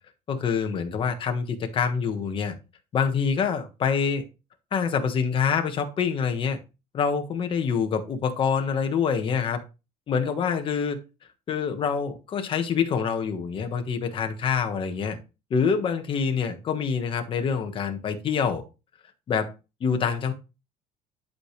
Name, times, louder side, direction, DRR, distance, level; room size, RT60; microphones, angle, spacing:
voice 1, 0.3-2.6 2.9-4.3 4.7-6.6 6.9-9.6 10.1-11.0 11.5-15.2 15.5-18.6 19.3-19.5 19.8-20.3, left 6 dB, 35° left, 5 dB, 1.4 m, -26 dB
11.0 x 5.1 x 3.2 m, 0.29 s
cardioid pair, 160°, 16 cm